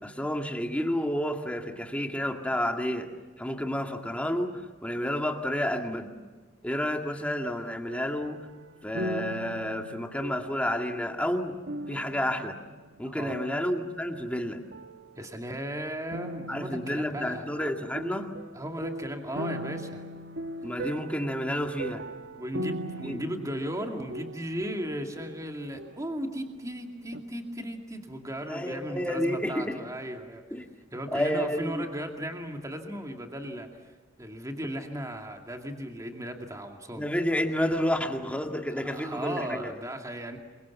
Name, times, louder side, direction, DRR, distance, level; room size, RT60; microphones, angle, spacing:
voice 1, 0.0-3.1 3.4-6.1 6.6-8.4 8.8-11.6 11.9-12.6 13.0-14.6 16.5-18.3 20.6-22.0 23.0-23.2 28.5-29.8 30.5-30.6 31.1-31.9 37.0-39.7, equal, 5° left, 4 dB, 2.0 m, -30 dB
sound 1, 7.9-14.4 14.7-15.5 16.1-26.8 27.1-27.2, right 1 dB, 70° right, 1.4 m, -40 dB
voice 2, 13.0-13.4 15.2-17.5 18.5-20.0 21.0-21.1 22.4-30.4 30.9-33.7 34.2-37.0 38.7-40.4, equal, 20° right, 4 dB, 2.4 m, -36 dB
27.5 x 24.0 x 7.2 m, 1.3 s
head